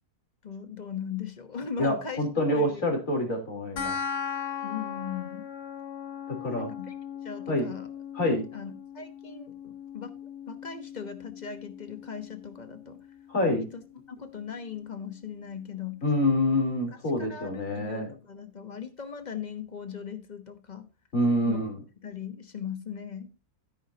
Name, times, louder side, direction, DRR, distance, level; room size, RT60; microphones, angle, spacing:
voice 1, 0.4-2.2 2.5-2.8 4.6-5.4 6.5-6.9 7.2-7.9 8.2-10.2 10.5-13.0 13.4-13.8 14.1-16.0 16.8-17.0 17.3-20.9 21.5-21.6 22.0-23.3, left 7 dB, 30° left, 1.2 m, -39 dB
voice 2, 1.8-3.9 6.3-6.7 7.5-7.7 8.1-8.4 13.3-13.6 16.0-18.1 21.1-21.8, left 1 dB, 55° left, 4.2 m, -26 dB
sound 1, 3.8-14.7, left 7 dB, 90° left, 1.6 m, -39 dB
12.5 x 10.0 x 2.8 m
omnidirectional pair, 1.7 m